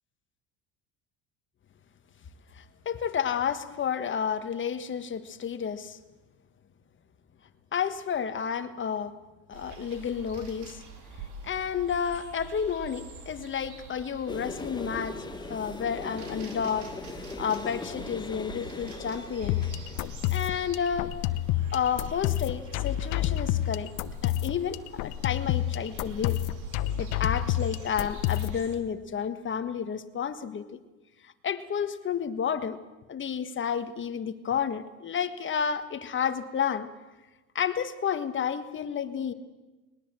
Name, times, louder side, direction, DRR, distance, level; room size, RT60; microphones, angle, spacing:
voice 1, 2.5-6.0 7.7-9.1 9.5-10.8 11.4-15.2 15.5-16.9 17.4-19.6 20.3-21.1 21.7-23.9 24.2-26.4 27.0-30.8 31.2-32.8 33.1-36.9 37.5-39.3, left 7 dB, 35° left, 11 dB, 1.5 m, -31 dB
sound 1, 9.5-28.8, right 4 dB, 55° right, 3.8 m, -46 dB
sound 2, 14.3-23.6, left 3 dB, 10° left, 1.2 m, -42 dB
sound 3, 19.4-28.7, left 13 dB, 65° left, 1.0 m, -29 dB
20.5 x 19.5 x 7.6 m, 1.2 s
supercardioid pair, 105°, 35 cm